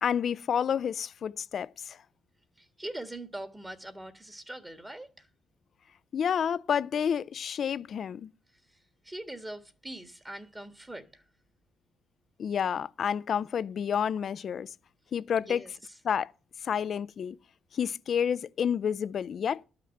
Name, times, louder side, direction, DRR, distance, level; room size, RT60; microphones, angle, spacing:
voice 1, 0.0-2.0 6.1-8.3 12.4-14.7 15.1-15.6 16.0-16.3 16.6-17.4 17.7-19.6, left 8 dB, 55° left, 0.5 m, -29 dB
voice 2, 2.6-5.3 8.5-11.2 15.4-16.0, right 1 dB, 15° right, 1.6 m, -43 dB
12.0 x 5.9 x 7.3 m
cardioid pair, 90°, 0 cm